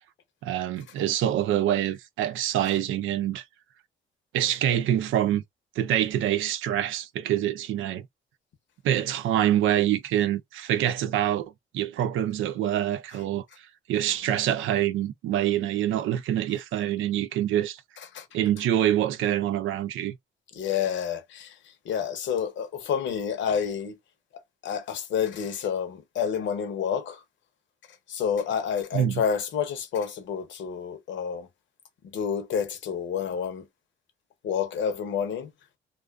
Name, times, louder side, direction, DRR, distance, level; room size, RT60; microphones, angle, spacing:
voice 1, 0.4-3.4 4.3-5.4 5.8-8.0 8.8-13.4 13.9-17.8 18.3-20.2 28.9-29.2, right 11 dB, 85° right, 0.5 m, -25 dB
voice 2, 20.5-21.6 21.8-24.0 24.6-27.2 28.1-31.5 32.0-33.7 34.4-35.5, left 7 dB, 70° left, 0.8 m, -29 dB
2.4 x 2.3 x 2.3 m
cardioid pair, 90°, 20 cm